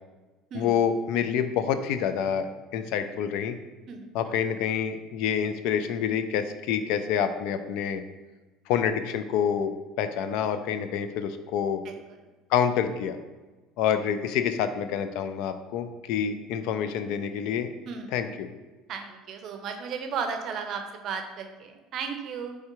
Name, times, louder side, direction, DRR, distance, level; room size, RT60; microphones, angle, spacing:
voice 1, 0.5-3.6 4.1-8.0 8.7-11.8 12.5-13.2 13.8-17.7 18.1-18.5, left 8 dB, 70° left, 10 dB, 0.3 m, -27 dB
voice 2, 18.9-22.6, right 6 dB, 50° right, 5 dB, 0.5 m, -34 dB
4.6 x 3.3 x 2.9 m, 1.2 s
cardioid pair, 135°, 0 cm